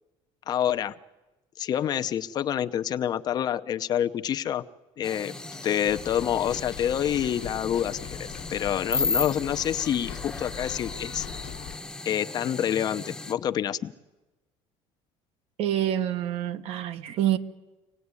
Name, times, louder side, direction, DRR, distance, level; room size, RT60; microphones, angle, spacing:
voice 1, 0.5-1.0 1.6-4.6 5.0-5.3 5.6-11.3 12.1-13.9, left 10 dB, 35° left, 0.7 m, -27 dB
sound 1, 5.0-13.3, left 3 dB, 5° left, 1.0 m, -35 dB
sound 2, 5.9-11.8, left 12 dB, 65° left, 1.4 m, -41 dB
voice 2, 15.6-17.4, right 11 dB, 60° right, 1.3 m, -27 dB
25.5 x 18.5 x 9.7 m
cardioid pair, 160°, 11 cm